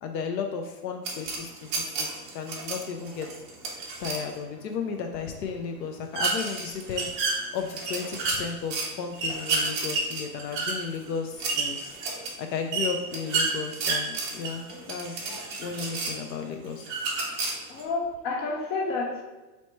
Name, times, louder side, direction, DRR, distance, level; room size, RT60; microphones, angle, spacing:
voice 1, 0.0-2.1 2.3-3.3 4.0-7.1 7.5-12.0 12.4-15.3 15.6-16.9, left 6 dB, 85° left, 4 dB, 0.6 m, -34 dB
sound 1, 1.0-4.3 6.1-8.9 9.1-16.3 16.8-17.8, right 3 dB, 20° right, 0.4 m, -30 dB
voice 2, 15.2-15.5 17.7-19.2, left 3 dB, 50° left, 0 dB, 1.1 m, -30 dB
3.1 x 2.9 x 4.3 m, 1.2 s
supercardioid pair, 145°, 49 cm